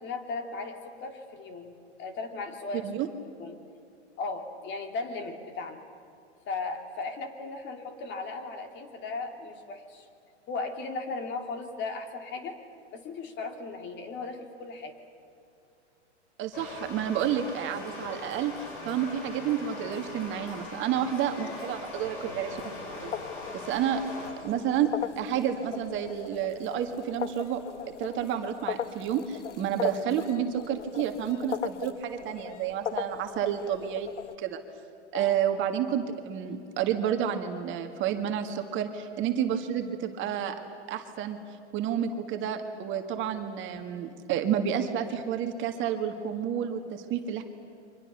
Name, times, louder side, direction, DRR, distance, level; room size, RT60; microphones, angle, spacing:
voice 1, 0.0-2.9 3.4-3.6 4.2-5.8 6.5-10.1 10.5-12.5 12.9-14.9 35.1-35.4, left 3 dB, 30° left, 6 dB, 2.8 m, -36 dB
voice 2, 16.4-22.6 23.0-23.2 23.5-24.0 24.4-24.9 25.2-27.6 28.0-34.1 34.4-34.6 35.1-40.6 40.9-41.4 41.7-47.4, right 9 dB, 35° right, 5 dB, 1.9 m, -30 dB
sound 1, 16.5-24.3, left 2 dB, 50° left, 6.9 m, -41 dB
sound 2, 21.3-34.4, left 8 dB, 90° left, 1.0 m, -39 dB
30.0 x 24.5 x 6.8 m, 2.5 s
hypercardioid pair, 115°, 35 cm